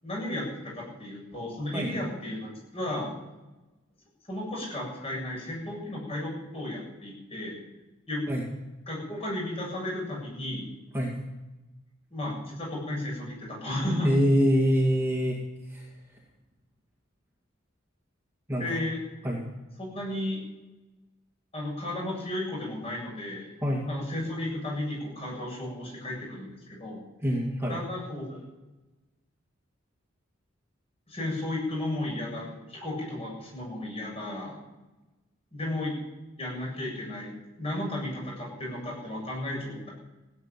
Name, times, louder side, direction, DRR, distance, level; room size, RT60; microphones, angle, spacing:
voice 1, 0.0-3.1 4.3-7.6 8.1-8.3 8.9-10.6 12.1-14.1 18.6-19.0 19.8-20.4 21.5-23.5 23.9-27.0 27.7-28.4 31.1-34.6 35.5-35.9 36.4-37.3 37.6-39.9, left 1 dB, 30° left, -2 dB, 7.6 m, -34 dB
voice 2, 14.0-15.9 18.5-18.7 19.2-19.5 23.6-23.9 27.2-27.8, equal, 15° right, -2 dB, 2.2 m, -25 dB
16.5 x 9.0 x 9.1 m, 1.1 s
head